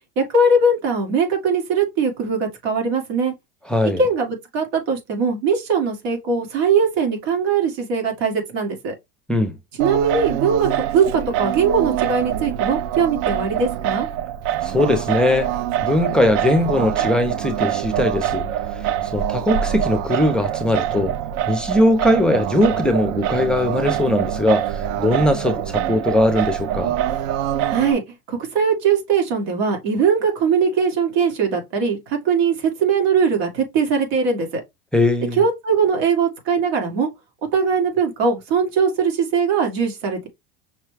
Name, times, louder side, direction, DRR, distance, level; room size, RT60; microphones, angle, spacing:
voice 1, 0.2-3.3 4.0-8.9 9.8-10.7 10.9-14.1 27.7-28.0 28.3-34.6 35.4-37.1 37.5-40.3, right 5 dB, 90° right, 1.9 m, -20 dB
voice 2, 3.7-4.0 9.3-9.5 14.6-15.5 15.8-18.5 19.1-21.1 21.5-26.9 34.9-35.4, left 1 dB, 5° left, 0.5 m, -20 dB
Singing, 9.8-27.9, right 11 dB, 70° right, 0.5 m, -24 dB
5.6 x 2.2 x 3.3 m
supercardioid pair, 140°, 30 cm